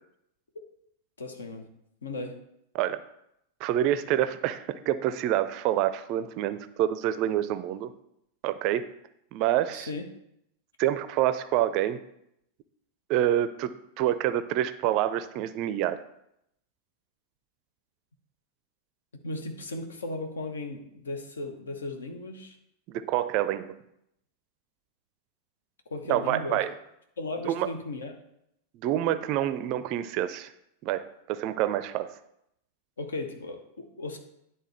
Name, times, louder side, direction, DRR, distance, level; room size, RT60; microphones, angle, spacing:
voice 1, 1.2-1.7 2.0-2.4 9.7-10.0 19.2-22.6 25.9-26.6 27.2-28.1 33.0-34.2, left 2 dB, 70° left, 6 dB, 1.0 m, -36 dB
voice 2, 3.6-7.9 8.4-8.9 9.3-9.9 10.8-12.0 13.1-16.0 22.9-23.7 26.1-26.7 27.5-27.7 28.8-30.5 30.8-32.1, right 12 dB, 40° right, 12 dB, 0.4 m, -27 dB
10.5 x 3.6 x 4.2 m, 0.79 s
figure-of-eight pair, 90°, 0 cm